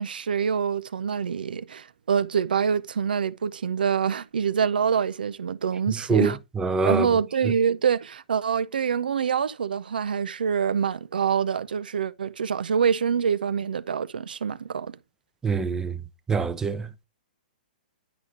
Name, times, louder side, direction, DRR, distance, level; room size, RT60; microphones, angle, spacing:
voice 1, 0.0-6.4 6.9-15.0, right 7 dB, 80° right, 0.5 m, -25 dB
voice 2, 6.6-7.1 15.4-15.9 16.3-16.8, right 4 dB, 10° right, 0.6 m, -23 dB
9.8 x 4.9 x 3.3 m
hypercardioid pair, 125°, 5 cm